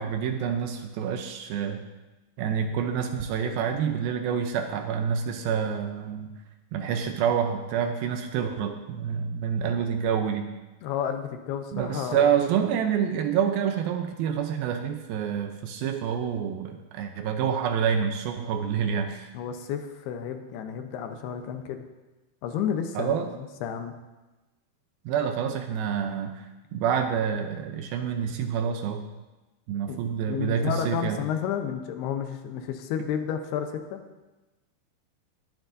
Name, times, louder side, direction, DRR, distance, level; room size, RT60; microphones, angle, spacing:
voice 1, 0.0-1.8 2.4-6.3 6.7-10.5 11.7-19.3 23.0-23.3 25.1-29.1 29.7-31.2, right 7 dB, 75° right, 6 dB, 2.3 m, -27 dB
voice 2, 10.8-12.3 19.3-21.9 22.4-24.0 29.9-30.0 30.3-34.0, left 8 dB, 80° left, 6 dB, 2.8 m, -31 dB
20.5 x 10.0 x 2.7 m, 1.1 s
omnidirectional pair, 4.6 m